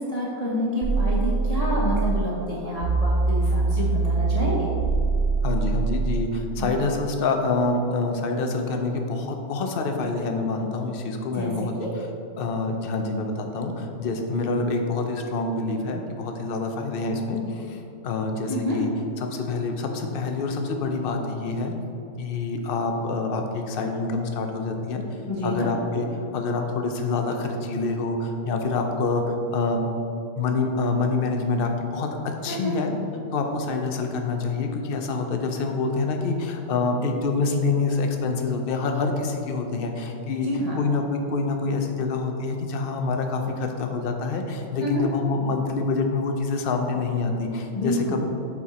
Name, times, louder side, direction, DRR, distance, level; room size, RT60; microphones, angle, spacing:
voice 1, 0.0-4.7 6.6-6.7 11.3-11.5 11.8-11.9 18.5-18.8 25.3-25.7 32.5-32.8 40.4-40.8 44.8-45.1 47.7-48.2, left 1 dB, 30° left, -6 dB, 0.9 m, -28 dB
sound 1, 0.8-2.3 2.8-6.3, right 3 dB, 55° right, 0.7 m, -23 dB
voice 2, 5.4-11.7 12.4-18.9 19.3-21.7 22.2-25.0 25.4-29.8 30.4-32.9 33.3-40.5 40.8-48.2, left 3 dB, 60° left, 4 dB, 0.6 m, -26 dB
6.9 x 4.3 x 4.1 m, 2.7 s
omnidirectional pair, 1.6 m